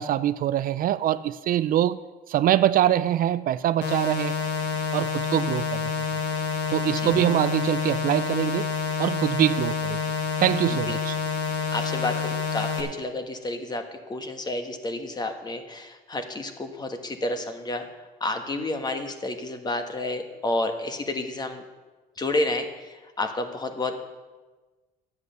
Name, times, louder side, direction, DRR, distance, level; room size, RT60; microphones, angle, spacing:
voice 1, 0.0-2.0 2.3-4.5 4.9-5.9 6.7-8.7 9.0-10.0 10.4-11.2, right 11 dB, 55° right, 14 dB, 0.4 m, -24 dB
sound 1, 3.8-12.8, left 6 dB, 90° left, 1.7 m, -28 dB
voice 2, 11.7-17.9 18.2-21.6 22.2-24.0, left 2 dB, 25° left, 7 dB, 1.3 m, -30 dB
11.0 x 8.2 x 6.8 m, 1.3 s
cardioid pair, 110°, 17 cm